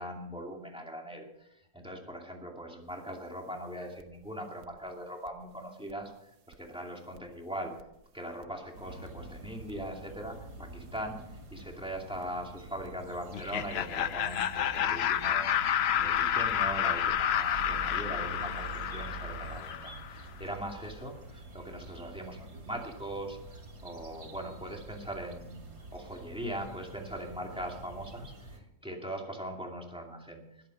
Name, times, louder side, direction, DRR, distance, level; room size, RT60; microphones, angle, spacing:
voice 1, 0.0-7.7 8.1-25.6 25.9-30.4, right 1 dB, 5° right, 1 dB, 2.4 m, -41 dB
sound 1, 2.9-3.0 4.0-4.2 4.6-4.9 5.3-5.4 5.9-6.0 6.5-6.6 7.2-7.3 7.8-8.1 8.4-8.7 9.1-9.2 9.7-9.8 10.9-11.2 11.6-11.8 12.2-12.4 12.8-12.9 13.5-13.6 14.1-14.2 14.7-19.6, right 4 dB, 60° right, 1.3 m, -45 dB
sound 2, 8.7-28.6, right 2 dB, 80° right, 3.1 m, -48 dB
Laughter, 13.3-20.1, left 9 dB, 70° left, 0.6 m, -30 dB
20.0 x 8.5 x 5.3 m, 0.82 s
omnidirectional pair, 1.7 m